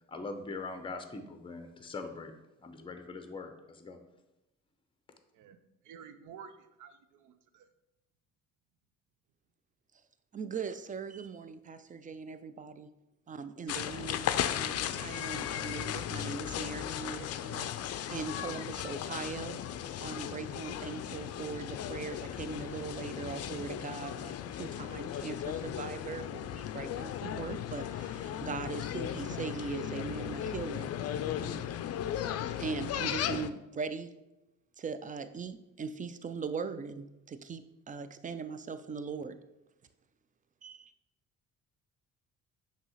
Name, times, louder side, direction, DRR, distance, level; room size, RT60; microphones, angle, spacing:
voice 1, 0.1-2.3 2.6-4.0, left 3 dB, 15° left, 6 dB, 0.7 m, -42 dB
voice 2, 5.3-7.7, right 7 dB, 80° right, 10 dB, 0.6 m, -52 dB
voice 3, 10.3-12.9 13.3-19.6 20.0-30.9 31.4-31.7 32.6-34.1 34.8-39.4 40.6-40.9, right 5 dB, 25° right, 11 dB, 0.4 m, -40 dB
sound 1, 13.7-33.5, left 10 dB, 55° left, 0.4 m, -36 dB
5.9 x 2.9 x 5.6 m, 0.95 s
cardioid pair, 90°, 30 cm